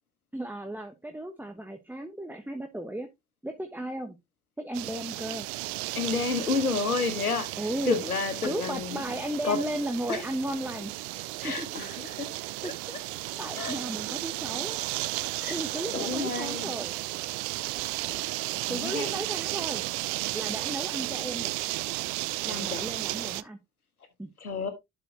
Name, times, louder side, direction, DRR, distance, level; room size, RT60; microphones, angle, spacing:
voice 1, 0.3-3.1 3.4-4.2 4.6-5.5 7.6-8.0 8.4-10.9 11.4-11.8 12.6-12.7 13.4-14.9 15.5-16.9 18.7-19.9 20.3-21.5 22.4-23.6 24.2-24.3, right 1 dB, 5° right, 1.2 m, -35 dB
sound 1, 4.7-23.4, right 22 dB, 60° right, 0.6 m, -34 dB
voice 2, 5.9-7.5 7.9-9.0 9.4-9.6 10.1-10.2 11.4-12.3 12.6-13.0 13.6-13.8 15.4-15.6 15.9-16.7 18.1-18.2 18.6-19.1 22.4-22.8 24.4-24.7, left 4 dB, 90° left, 1.1 m, -30 dB
11.5 x 4.7 x 2.8 m
figure-of-eight pair, 50°, 43 cm